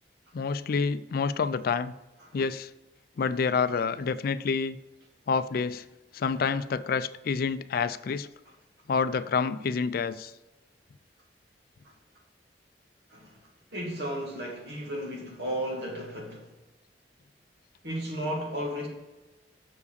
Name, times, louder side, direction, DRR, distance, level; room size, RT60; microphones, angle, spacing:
voice 1, 0.3-1.9 2.3-2.7 3.2-4.8 5.3-5.8 6.1-8.3 8.9-10.3, left 5 dB, 60° left, 0.4 m, -28 dB
voice 2, 13.1-13.4 13.7-16.5 17.8-18.9, equal, 65° right, 2.1 m, -34 dB
6.8 x 4.8 x 6.7 m
head